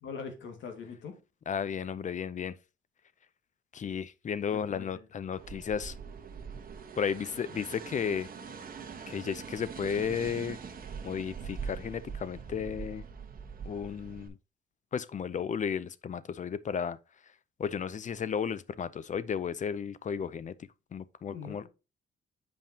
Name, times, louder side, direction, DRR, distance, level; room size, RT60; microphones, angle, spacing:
voice 1, 0.0-1.1 4.5-4.9 21.3-21.7, left 5 dB, 70° left, 1.9 m, -42 dB
voice 2, 1.5-2.5 3.7-5.9 7.0-8.3 9.1-10.6 11.0-13.1 13.6-14.4 14.9-17.0 17.6-20.5 20.9-21.7, left 7 dB, 40° left, 0.5 m, -34 dB
sound 1, 5.4-14.3, right 6 dB, 45° right, 1.2 m, -43 dB
7.5 x 5.3 x 2.8 m
cardioid pair, 90°, 20 cm